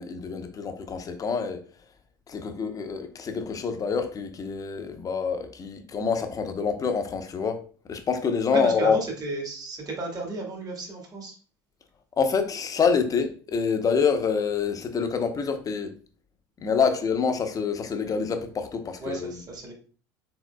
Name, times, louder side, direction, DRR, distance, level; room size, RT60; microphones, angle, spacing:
voice 1, 0.0-1.6 2.3-7.6 7.9-9.0 12.2-16.0 16.6-19.4, left 5 dB, 30° left, 0.8 m, -26 dB
voice 2, 8.5-11.4 19.0-19.7, right 2 dB, 35° right, 1.6 m, -33 dB
4.8 x 3.6 x 2.2 m
hypercardioid pair, 70°, 11 cm